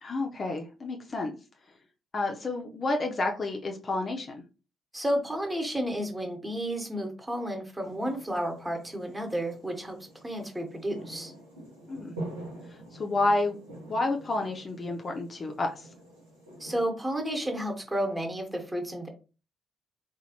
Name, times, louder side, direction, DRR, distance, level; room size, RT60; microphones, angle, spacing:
voice 1, 0.0-1.3 2.1-4.4 11.9-12.1 12.9-13.6 13.9-15.9, left 2 dB, 35° left, 2 dB, 0.6 m, -30 dB
voice 2, 4.9-10.0 10.2-11.3 16.6-19.1, equal, 15° right, 4 dB, 1.1 m, -31 dB
sound 1, 7.8-16.8, right 1 dB, 80° right, 1.4 m, -45 dB
3.9 x 2.4 x 2.8 m, 0.33 s
figure-of-eight pair, 40°, 0 cm